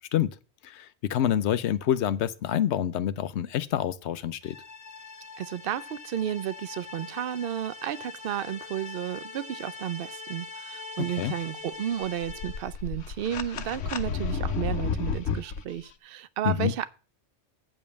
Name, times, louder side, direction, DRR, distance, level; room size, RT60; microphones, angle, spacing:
voice 1, 0.6-4.6 11.0-11.3 16.4-16.7, left 10 dB, 70° left, 0.9 m, -27 dB
sound 1, 4.4-12.8, left 3 dB, 40° left, 1.1 m, -42 dB
voice 2, 5.4-16.9, right 10 dB, 60° right, 0.8 m, -32 dB
sound 2, 12.0-15.6, left 5 dB, 90° left, 1.2 m, -31 dB
8.7 x 5.3 x 6.8 m
omnidirectional pair, 1.2 m